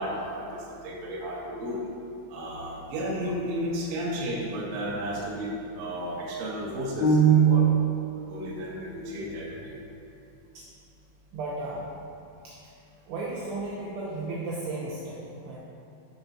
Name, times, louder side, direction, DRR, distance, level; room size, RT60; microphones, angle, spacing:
voice 1, 0.0-1.8 2.3-5.5 5.8-7.6 8.3-9.7, equal, 60° right, -6 dB, 2.7 m, -33 dB
sound 1, 7.0-8.0, right 6 dB, 90° left, 2.0 m, -19 dB
voice 2, 11.3-12.0 12.4-12.6 13.1-15.6, right 2 dB, 75° right, -6 dB, 2.9 m, -34 dB
12.5 x 5.8 x 2.8 m, 2.5 s
omnidirectional pair, 5.8 m